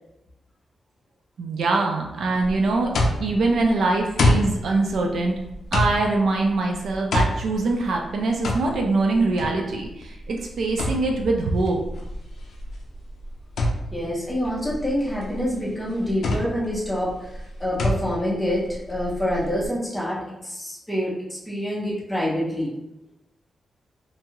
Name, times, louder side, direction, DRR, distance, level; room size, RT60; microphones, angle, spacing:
voice 1, 1.4-2.9 3.2-5.4 5.7-11.8, right 3 dB, 65° right, 1 dB, 0.4 m, -23 dB
sound 1, 2.4-19.7, left 1 dB, 65° left, 0.4 m, -28 dB
voice 2, 13.9-22.7, equal, 5° left, -6 dB, 0.8 m, -27 dB
2.6 x 2.3 x 2.9 m, 0.89 s
wide cardioid pair, 170°, 0 cm